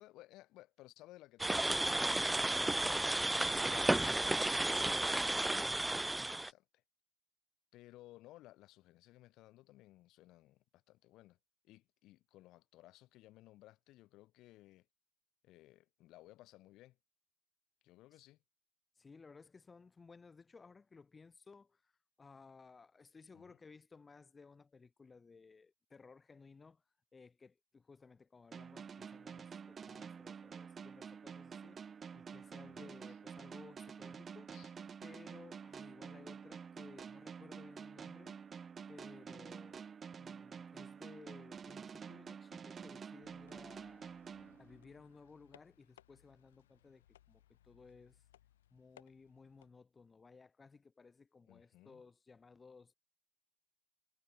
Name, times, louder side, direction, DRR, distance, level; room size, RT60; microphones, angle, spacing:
voice 1, 0.0-6.8 7.7-11.4 11.6-14.9 15.4-17.0 17.8-18.4 23.3-23.6 32.6-33.2 34.5-34.7 44.3-44.6 51.5-52.0, left 17 dB, 60° left, 6.5 m, -60 dB
sound 1, 1.4-6.5, right 1 dB, 10° right, 0.8 m, -33 dB
voice 2, 19.0-21.9 22.2-26.8 27.1-31.8 32.1-34.6 35.0-38.4 38.9-39.9 40.2-44.1 44.5-48.2 48.7-52.9, left 4 dB, 25° left, 6.9 m, -59 dB
sound 2, 28.5-45.1, right 6 dB, 35° right, 2.3 m, -49 dB
sound 3, 43.2-49.7, left 12 dB, 80° left, 4.3 m, -67 dB
hypercardioid pair, 65°, 0 cm